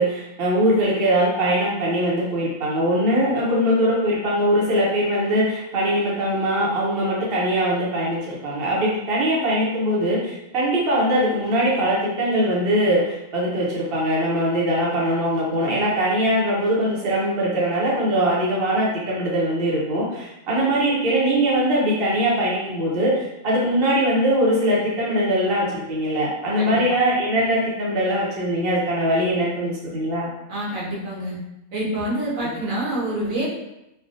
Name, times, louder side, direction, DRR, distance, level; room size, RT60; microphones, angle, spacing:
voice 1, 0.0-30.3, equal, 50° right, -5 dB, 0.9 m, -21 dB
voice 2, 30.5-31.4 31.7-33.4, right 1 dB, 70° right, -6 dB, 1.2 m, -26 dB
3.4 x 2.2 x 2.6 m, 0.90 s
omnidirectional pair, 1.5 m